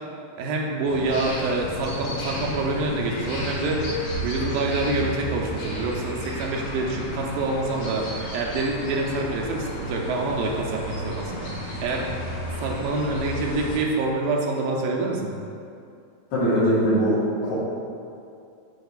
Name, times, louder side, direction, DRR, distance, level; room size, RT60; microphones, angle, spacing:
voice 1, 0.4-4.0 4.2-12.2 12.6-15.3, right 2 dB, 80° right, -1 dB, 2.4 m, -26 dB
sound 1, 0.9-13.8, equal, 60° left, 2.6 m, -33 dB
voice 2, 16.3-17.5, equal, 80° left, -8 dB, 3.5 m, -21 dB
13.0 x 4.5 x 2.4 m, 2.5 s
omnidirectional pair, 4.1 m